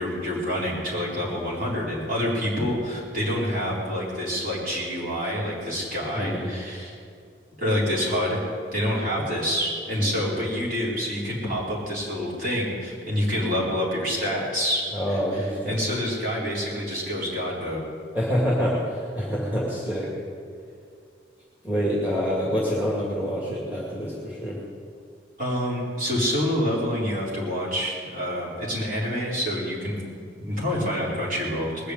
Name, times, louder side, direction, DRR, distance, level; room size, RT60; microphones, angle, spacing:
voice 1, 0.0-6.9 7.6-8.4 8.7-14.8 15.1-17.8 25.4-30.0 30.4-31.9, equal, 50° right, -6 dB, 4.6 m, -27 dB
voice 2, 6.1-6.5 9.9-10.2 14.9-15.8 18.1-20.1 21.6-24.6, equal, 10° right, -5 dB, 2.3 m, -26 dB
20.0 x 6.8 x 8.3 m, 2.3 s
head